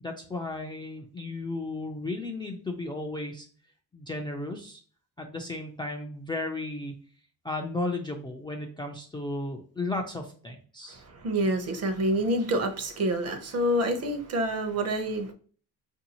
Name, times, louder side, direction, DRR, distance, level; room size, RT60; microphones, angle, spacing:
voice 1, 0.0-3.5 3.9-4.8 5.2-6.9 7.4-11.0, left 2 dB, 15° left, 1 dB, 0.3 m, -34 dB
voice 2, 10.9-15.3, right 1 dB, 45° right, 6 dB, 0.7 m, -27 dB
4.6 x 2.6 x 2.8 m, 0.42 s
cardioid pair, 145°, 35 cm